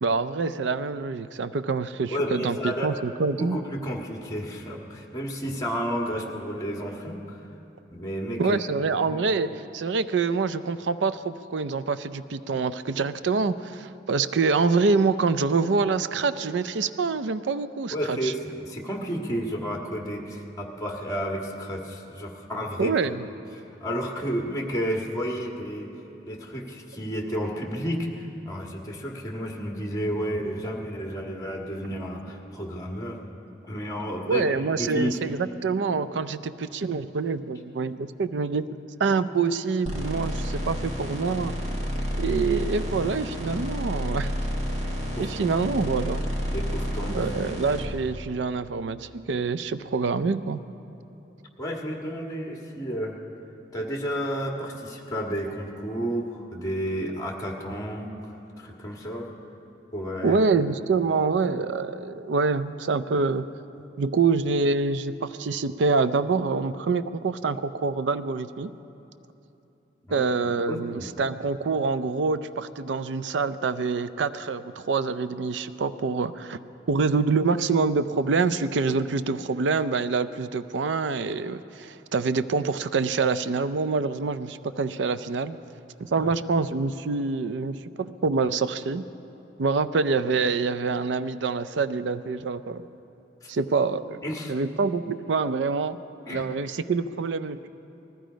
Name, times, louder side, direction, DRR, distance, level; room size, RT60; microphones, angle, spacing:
voice 1, 0.0-3.6 8.4-18.3 22.8-23.2 34.3-41.5 42.2-44.3 45.2-46.3 47.1-50.7 60.2-63.5 64.0-68.7 70.1-76.6 76.9-85.6 86.0-89.0 89.6-92.9 93.5-94.2 94.5-96.0 96.3-97.7, right 4 dB, 90° right, 14 dB, 0.5 m, -26 dB
voice 2, 2.1-2.9 3.3-7.4 7.9-8.6 9.0-9.2 17.9-22.9 23.8-25.9 26.3-33.2 33.6-34.5 34.8-35.2 42.2-42.3 45.2-45.5 46.5-47.3 51.6-53.2 53.7-59.3 59.9-60.4 70.1-71.1 86.2-86.3 93.4-93.5 94.2-94.5 96.2-96.5, equal, 20° left, -1 dB, 1.8 m, -31 dB
sound 1, 39.8-47.8, equal, 40° right, 1.9 m, -30 dB
20.0 x 14.0 x 5.1 m, 2.9 s
head